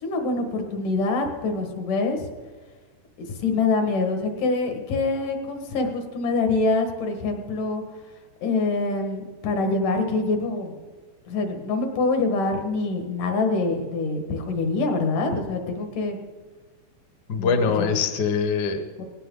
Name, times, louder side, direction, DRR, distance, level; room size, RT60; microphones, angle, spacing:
voice 1, 0.0-2.3 3.2-7.8 8.4-10.8 11.3-16.2 17.4-17.9 19.0-19.1, left 3 dB, 80° left, 4 dB, 3.2 m, -25 dB
voice 2, 17.3-19.0, left 5 dB, 60° left, 7 dB, 1.1 m, -23 dB
18.5 x 16.5 x 3.8 m, 1.4 s
omnidirectional pair, 3.7 m